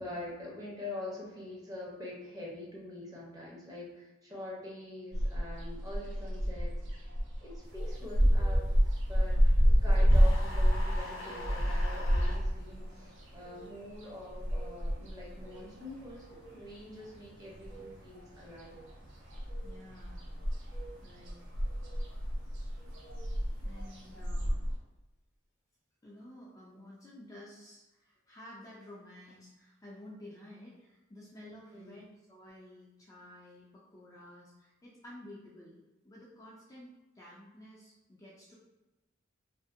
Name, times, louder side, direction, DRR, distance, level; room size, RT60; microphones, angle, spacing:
voice 1, 0.0-6.8 7.4-8.7 9.1-9.4 9.6-18.8 31.7-32.0, left 2 dB, 20° right, -5 dB, 0.7 m, -44 dB
sound 1, 5.1-16.7 17.0-18.3 18.6-24.8, equal, 65° right, 0.5 m, -29 dB
sound 2, 7.6-24.3, right 3 dB, 45° right, 1.2 m, -55 dB
voice 2, 9.2-9.5 19.6-20.3 21.0-21.4 23.6-24.6 26.0-35.8 36.0-38.5, left 1 dB, 15° left, -6 dB, 0.4 m, -52 dB
sound 3, 10.1-12.4, left 2 dB, 85° left, 0.6 m, -43 dB
2.6 x 2.5 x 2.5 m, 1.0 s
head